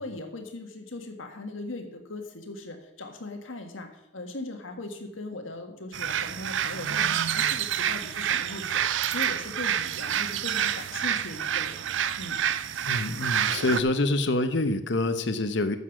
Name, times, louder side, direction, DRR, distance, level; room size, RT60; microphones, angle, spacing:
voice 1, 0.0-11.9 12.2-12.4, left 2 dB, 90° left, 5 dB, 1.7 m, -39 dB
sound 1, 5.9-13.8, right 9 dB, 70° right, 0.4 m, -28 dB
voice 2, 12.8-15.8, left 2 dB, 65° left, 10 dB, 0.9 m, -26 dB
10.0 x 7.2 x 6.0 m, 0.86 s
head